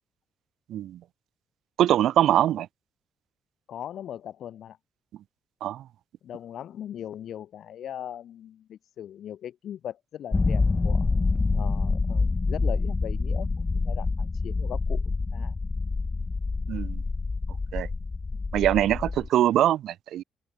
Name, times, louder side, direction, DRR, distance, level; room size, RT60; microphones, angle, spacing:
voice 1, 0.7-1.0 1.8-2.7 5.6-5.8 16.7-17.0 17.7-17.9 18.5-20.2, right 12 dB, 75° right, 0.5 m, -23 dB
voice 2, 3.7-4.8 6.2-11.1 11.5-15.0 15.3-15.6 18.3-18.4, left 10 dB, 70° left, 1.3 m, -39 dB
sound 1, 10.3-19.3, left 3 dB, 25° left, 0.9 m, -27 dB
open air
cardioid pair, 90°, 0 cm